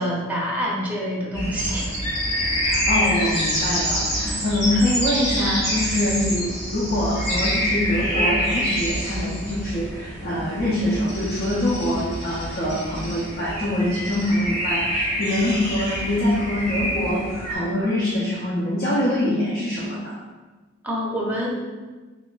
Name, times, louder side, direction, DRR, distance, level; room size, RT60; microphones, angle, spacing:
voice 1, 0.0-1.9 20.8-21.5, equal, 5° right, -5 dB, 0.6 m, -26 dB
sound 1, 1.3-17.5, equal, 30° left, 1.1 m, -26 dB
voice 2, 2.6-20.1, left 1 dB, 50° left, -8 dB, 0.7 m, -24 dB
3.4 x 2.0 x 3.8 m, 1.3 s
head